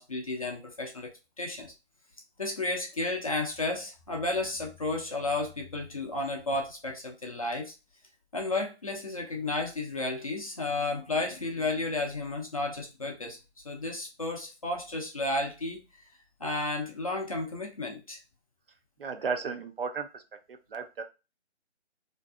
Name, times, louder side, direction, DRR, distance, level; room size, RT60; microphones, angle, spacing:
voice 1, 0.0-1.7 2.4-7.7 8.3-13.4 13.6-15.8 16.4-18.2, left 2 dB, 35° left, 0 dB, 0.4 m, -32 dB
voice 2, 19.0-20.2 20.5-21.0, right 5 dB, 55° right, 7 dB, 0.4 m, -34 dB
2.5 x 2.5 x 2.2 m, 0.28 s
figure-of-eight pair, 150°, 34 cm